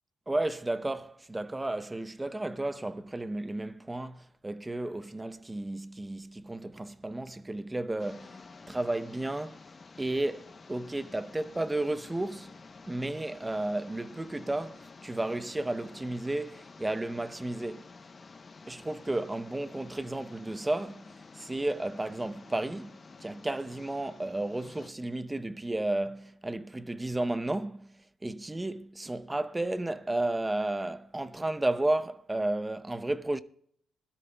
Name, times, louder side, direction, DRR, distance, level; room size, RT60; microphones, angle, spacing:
voice 1, 0.3-8.4 8.7-9.6 10.0-12.5 12.9-17.9 18.7-27.9 28.2-33.4, right 2 dB, 15° right, 0.6 m, -33 dB
sound 1, 8.0-24.9, left 4 dB, 35° left, 0.7 m, -51 dB
21.0 x 12.5 x 2.2 m
cardioid pair, 90°, 0 cm